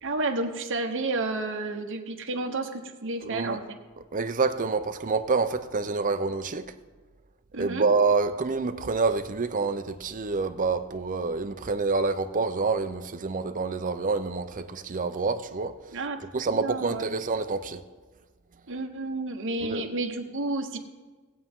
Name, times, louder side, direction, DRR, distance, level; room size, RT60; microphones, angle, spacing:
voice 1, 0.0-3.6 7.5-7.8 15.9-16.2 16.5-17.2 18.7-20.8, right 2 dB, 60° right, 1.2 m, -31 dB
voice 2, 3.2-3.6 4.1-6.7 7.6-15.7 16.3-17.8 19.6-19.8, right 4 dB, 40° right, 0.6 m, -27 dB
19.0 x 8.0 x 3.7 m
head